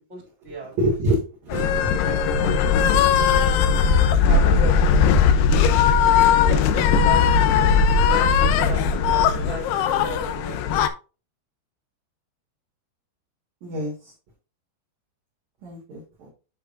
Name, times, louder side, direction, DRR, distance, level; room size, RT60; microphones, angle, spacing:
voice 1, 0.8-1.7 13.6-13.9 15.6-16.3, right 1 dB, 60° right, -3 dB, 2.0 m, -25 dB
sound 1, 1.5-10.9, left 6 dB, 85° left, 2.3 m, -18 dB
voice 2, 1.9-2.7 3.3-3.5 4.2-4.8 6.3-7.2 8.1-10.6, right 1 dB, 15° right, -2 dB, 3.0 m, -35 dB
7.8 x 7.0 x 2.5 m, 0.32 s
omnidirectional pair, 5.5 m